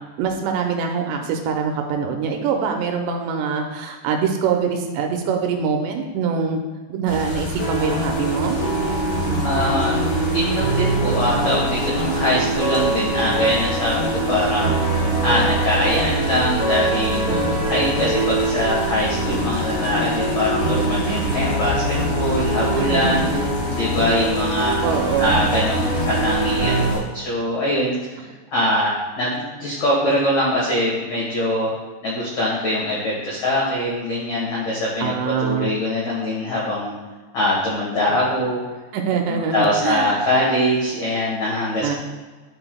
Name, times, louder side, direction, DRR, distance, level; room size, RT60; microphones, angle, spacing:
voice 1, 0.2-6.6 6.9-8.6 17.3-17.7 22.8-23.4 24.8-25.4 35.0-35.7 38.9-40.2 41.8-42.0, right 6 dB, 80° right, 3 dB, 2.7 m, -24 dB
sound 1, 7.1-27.0, left 2 dB, 55° left, 1.8 m, -30 dB
sound 2, 7.6-26.9, right 2 dB, 35° right, 1.1 m, -23 dB
voice 2, 9.4-10.0 10.3-14.7 15.2-17.2 17.7-23.2 23.7-24.8 25.2-28.2 28.5-31.7 32.0-36.9 37.3-38.6 39.3-42.0, left 1 dB, 75° left, -5 dB, 1.6 m, -22 dB
11.5 x 5.9 x 2.2 m, 1.3 s
omnidirectional pair, 5.2 m